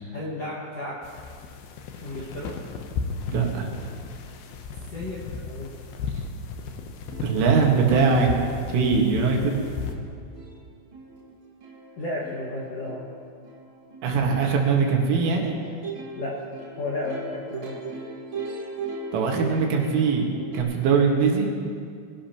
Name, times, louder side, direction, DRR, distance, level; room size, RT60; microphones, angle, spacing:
voice 1, 0.1-1.0 1.9-2.5 4.9-5.7 12.0-13.0 16.2-16.4 16.8-17.8, left 2 dB, 65° left, -6 dB, 1.5 m, -33 dB
sound 1, 1.0-9.9, left 5 dB, 85° left, 2.2 m, -35 dB
voice 2, 3.3-3.8 7.2-8.3 8.7-9.6 14.0-15.5 19.1-21.5, right 5 dB, 75° right, 0 dB, 4.2 m, -21 dB
Plucked string instrument, 6.7-6.8 7.1-20.6, right 3 dB, 55° right, 1.3 m, -39 dB
23.5 x 17.0 x 3.0 m, 2.2 s
omnidirectional pair, 5.8 m